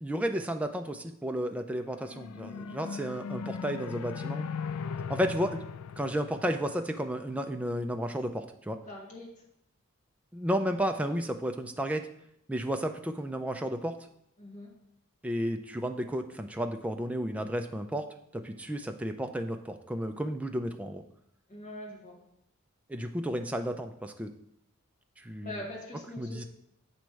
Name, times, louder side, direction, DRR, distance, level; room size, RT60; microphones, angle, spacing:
voice 1, 0.0-4.5 5.1-5.6 6.0-8.8 10.3-12.1 12.5-13.9 15.2-18.1 18.3-21.0 22.9-24.3 25.2-25.5 26.2-26.4, equal, 5° right, 5 dB, 0.3 m, -32 dB
sound 1, 1.8-7.3, left 6 dB, 80° left, 0.3 m, -39 dB
voice 2, 8.9-9.3 14.4-14.7 21.5-22.2 25.4-26.5, left 1 dB, 35° left, -3 dB, 1.5 m, -42 dB
7.4 x 3.1 x 4.5 m, 0.76 s
head